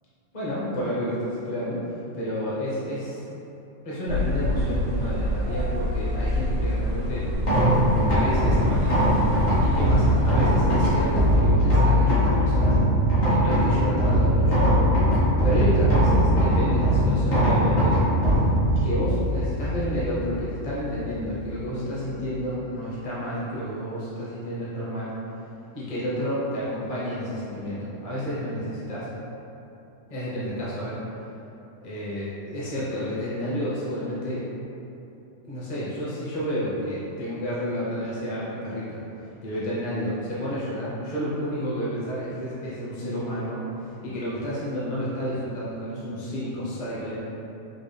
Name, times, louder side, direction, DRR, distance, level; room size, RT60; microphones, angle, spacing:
voice 1, 0.3-3.3 3.8-7.8 8.1-9.0 9.6-12.8 13.3-14.7 15.4-18.0 18.8-25.1 25.7-29.1 30.1-31.0 31.8-34.5 35.5-47.2, equal, 30° left, -9 dB, 0.7 m, -30 dB
sound 1, 4.1-11.4, equal, 90° right, 1.1 m, -26 dB
sound 2, 7.3-21.6, equal, 70° left, 1.3 m, -21 dB
3.8 x 2.4 x 3.3 m, 2.9 s
omnidirectional pair, 1.4 m